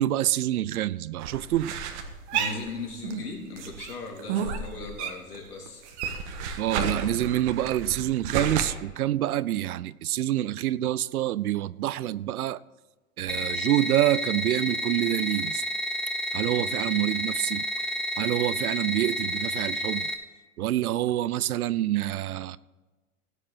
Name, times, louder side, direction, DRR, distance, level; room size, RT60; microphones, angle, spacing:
voice 1, 0.0-1.7 6.6-12.6 13.2-15.6 16.3-17.7 18.2-20.1 20.6-22.6, right 13 dB, 70° right, 0.6 m, -27 dB
sound 1, 1.2-3.3 3.6-5.4 5.7-8.6, right 6 dB, 50° right, 1.6 m, -32 dB
voice 2, 2.3-6.0 16.6-16.7, left 3 dB, 85° left, 3.1 m, -38 dB
sound 2, 13.3-20.1, equal, ahead, 0.9 m, -30 dB
16.5 x 7.6 x 4.1 m
hypercardioid pair, 105°, 45 cm